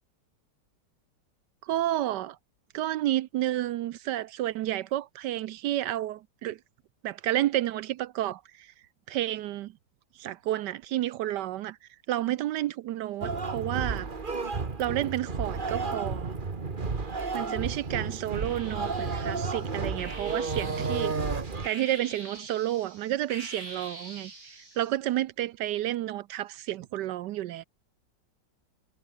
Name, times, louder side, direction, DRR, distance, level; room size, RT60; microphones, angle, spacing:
voice 1, 1.6-2.4 2.7-6.6 7.0-8.7 9.1-9.7 10.2-11.8 12.1-14.1 14.8-16.3 17.3-21.1 21.6-24.3 24.8-27.6, right 13 dB, 75° right, 1.2 m, -30 dB
sound 1, 13.2-21.7, right 4 dB, 30° right, 1.7 m, -32 dB
sound 2, 16.9-17.7 18.3-25.0, right 2 dB, 50° right, 7.0 m, -46 dB
omnidirectional pair, 2.0 m